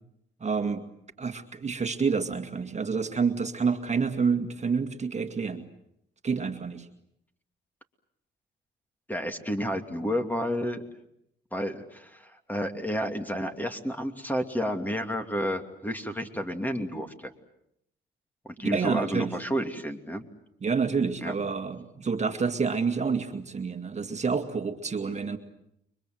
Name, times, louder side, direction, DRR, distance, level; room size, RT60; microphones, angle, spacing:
voice 1, 0.4-0.8 1.2-5.6 6.2-6.9 18.6-19.3 20.6-25.4, right 5 dB, 35° right, 6 dB, 2.1 m, -28 dB
voice 2, 9.1-10.8 11.5-17.3 18.4-20.2 21.2-21.3, equal, 10° left, 6 dB, 2.7 m, -31 dB
29.5 x 23.5 x 7.9 m, 0.77 s
cardioid pair, 90°, 20 cm